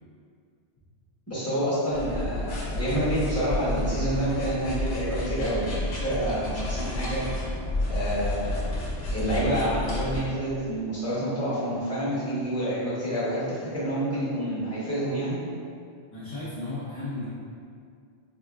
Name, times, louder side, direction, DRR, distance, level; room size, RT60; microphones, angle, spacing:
voice 1, 1.3-7.2 7.9-8.6 9.1-15.4, equal, 15° left, -10 dB, 0.9 m, -28 dB
sound 1, 1.9-10.2, left 1 dB, 85° left, 1.0 m, -30 dB
voice 2, 16.1-17.3, left 2 dB, 40° left, -12 dB, 0.4 m, -34 dB
3.7 x 2.4 x 2.3 m, 2.3 s
omnidirectional pair, 1.2 m